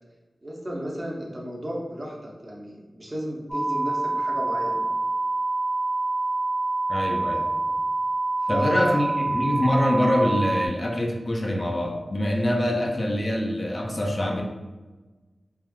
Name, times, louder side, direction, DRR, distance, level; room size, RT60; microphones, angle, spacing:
voice 1, 0.4-4.8 7.3-7.4 8.4-9.1, equal, 35° right, -3 dB, 0.6 m, -33 dB
sound 1, 3.5-10.7, right 2 dB, ahead, 0.7 m, -26 dB
voice 2, 6.9-7.4 8.5-14.4, left 1 dB, 35° left, 0 dB, 0.4 m, -24 dB
3.3 x 2.3 x 2.2 m, 1.2 s
wide cardioid pair, 85°, 0 cm